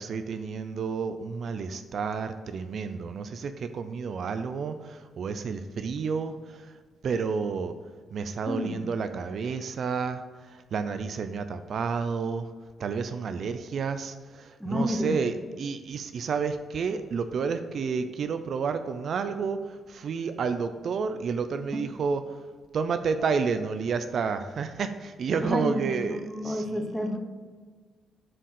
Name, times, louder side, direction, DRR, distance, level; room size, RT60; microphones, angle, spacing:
voice 1, 0.0-6.6 7.0-7.7 8.1-10.2 10.7-12.5 12.8-22.2 22.7-26.9, right 5 dB, 65° right, 9 dB, 0.5 m, -30 dB
voice 2, 8.5-8.8 14.6-15.1 25.4-27.2, left 1 dB, 10° left, 4 dB, 1.3 m, -30 dB
7.6 x 4.2 x 6.4 m, 1.5 s
cardioid pair, 70°, 0 cm